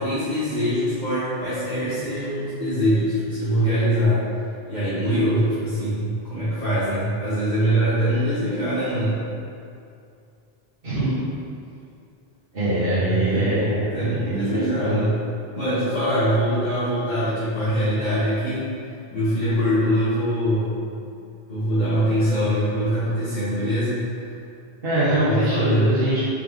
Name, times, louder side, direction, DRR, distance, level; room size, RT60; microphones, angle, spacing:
voice 1, 0.0-4.2 4.7-9.2 12.7-15.2 15.5-18.7 19.1-20.8 21.1-21.2 21.5-24.0 25.3-26.0, equal, 45° left, -15 dB, 1.8 m, -23 dB
voice 2, 10.8-11.1 12.5-15.0 24.8-26.3, right 1 dB, 65° right, -14 dB, 1.8 m, -23 dB
5.6 x 5.3 x 3.7 m, 2.5 s
omnidirectional pair, 1.0 m